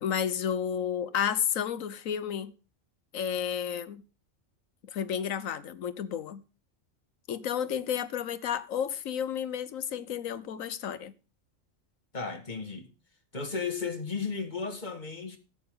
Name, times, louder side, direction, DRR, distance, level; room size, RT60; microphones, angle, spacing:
voice 1, 0.0-2.5 3.1-4.0 4.9-6.4 7.3-11.1, left 8 dB, 85° left, 1.3 m, -31 dB
voice 2, 12.1-12.9 13.3-15.4, left 5 dB, 35° left, 2.0 m, -34 dB
13.0 x 8.7 x 3.6 m
omnidirectional pair, 1.4 m